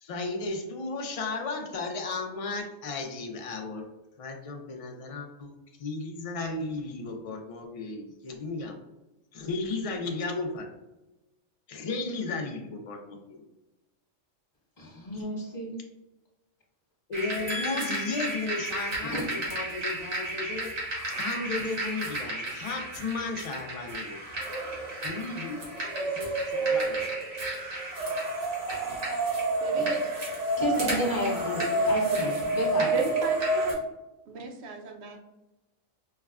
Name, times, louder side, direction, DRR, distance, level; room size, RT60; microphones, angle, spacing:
voice 1, 0.0-3.8 4.2-5.5 5.8-8.8 9.3-10.7 11.7-13.4 17.1-20.7 21.2-24.5 25.0-27.1, left 3 dB, 65° left, 2 dB, 0.3 m, -34 dB
voice 2, 14.8-15.7 17.5-19.3 29.7-29.9 30.6-32.9, left 1 dB, 40° left, -6 dB, 1.1 m, -33 dB
sound 1, 17.1-33.7, right 2 dB, 85° right, 1.6 m, -30 dB
voice 3, 29.6-30.0 30.7-31.9 32.9-33.8 34.3-35.2, right 3 dB, 65° right, 2 dB, 0.8 m, -36 dB
5.5 x 2.2 x 2.3 m, 1.0 s
omnidirectional pair, 1.3 m